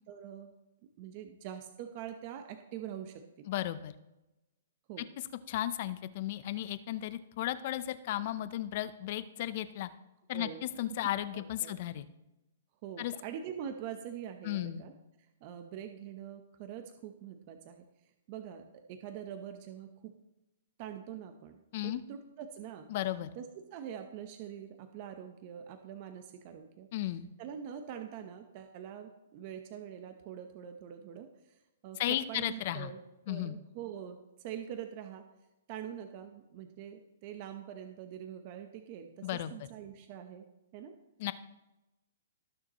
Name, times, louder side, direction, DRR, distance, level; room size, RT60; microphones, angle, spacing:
voice 1, 0.1-0.5 1.0-3.5 4.9-5.1 10.3-10.6 11.3-11.8 12.8-14.9 15.4-17.8 18.3-20.1 20.8-22.9 23.3-26.9 27.4-33.0 33.3-35.2 35.7-40.5 40.7-41.0, right 9 dB, 40° right, 6 dB, 0.9 m, -44 dB
voice 2, 3.5-3.9 5.5-9.9 10.3-12.1 13.0-13.1 14.4-14.8 21.7-22.0 22.9-23.3 26.9-27.3 32.0-32.9 33.3-33.5 39.2-39.5 41.2-41.3, left 13 dB, 45° left, 13 dB, 0.7 m, -34 dB
19.0 x 6.7 x 3.1 m, 0.96 s
hypercardioid pair, 145°, 0 cm